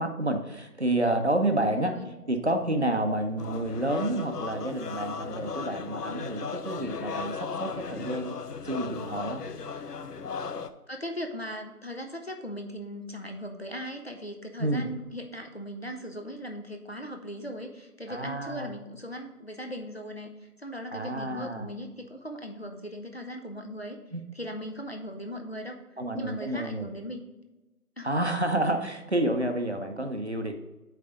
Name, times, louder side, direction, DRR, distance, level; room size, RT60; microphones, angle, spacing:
voice 1, 0.0-1.9 2.3-8.4 8.6-9.4 14.6-14.8 18.1-18.7 20.9-21.7 24.1-24.2 26.0-26.9 28.0-30.5, right 1 dB, 45° right, 5 dB, 0.7 m, -29 dB
voice 2, 1.6-2.1 10.9-24.0 24.3-25.8 26.1-27.2 28.0-28.1, equal, 40° left, 3 dB, 0.7 m, -38 dB
sound 1, 3.4-10.7, left 5 dB, 85° left, 0.7 m, -36 dB
8.6 x 3.3 x 4.9 m, 1.1 s
figure-of-eight pair, 170°, 47 cm